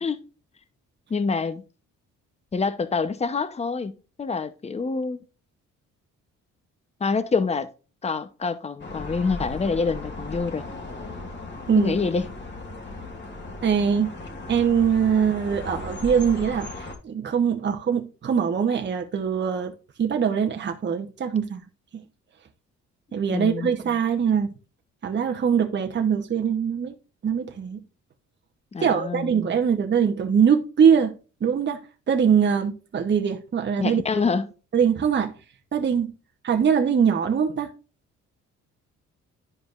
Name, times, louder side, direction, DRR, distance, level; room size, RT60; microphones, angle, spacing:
voice 1, 1.1-1.6 2.5-5.2 7.0-7.7 8.0-10.7 11.8-12.3 23.3-23.7 28.7-29.3 33.8-34.5, left 4 dB, 20° left, 0.7 m, -26 dB
sound 1, 8.8-17.0, left 2 dB, 35° left, 1.8 m, -37 dB
voice 2, 13.6-14.2 14.5-19.7 20.0-21.6 21.9-22.0 23.1-24.5 25.0-27.0 27.2-27.8 28.8-31.8 32.1-34.0 34.7-35.3 35.7-36.1 36.4-37.7, right 7 dB, 35° right, 0.9 m, -22 dB
11.0 x 5.1 x 2.4 m
cardioid pair, 90°, 30 cm